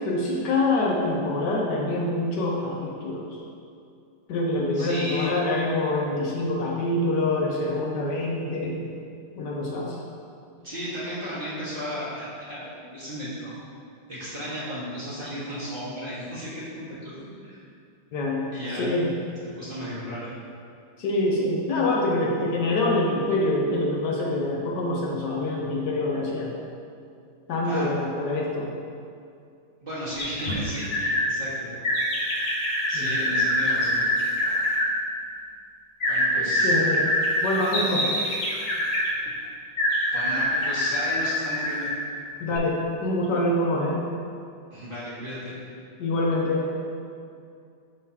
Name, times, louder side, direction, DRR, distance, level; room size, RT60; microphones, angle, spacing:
voice 1, 0.0-3.4 4.3-8.9 9.4-10.0 18.1-18.5 18.8-19.1 21.0-26.5 27.5-28.7 32.9-33.2 36.6-37.1 37.4-38.1 42.4-44.0 46.0-46.7, left 2 dB, 70° left, -2 dB, 1.3 m, -25 dB
voice 2, 4.7-5.3 10.6-13.6 14.1-17.1 17.4-17.6 18.5-18.9 19.6-20.3 27.6-27.9 29.8-31.7 32.9-34.0 36.1-36.8 40.1-41.9 44.7-45.5, equal, 30° right, -10 dB, 1.7 m, -34 dB
sound 1, 30.2-31.2 31.8-34.9 36.0-39.1 39.8-42.0 42.5-42.6, left 1 dB, 45° left, 0.9 m, -25 dB
11.0 x 3.7 x 2.8 m, 2.4 s
omnidirectional pair, 2.0 m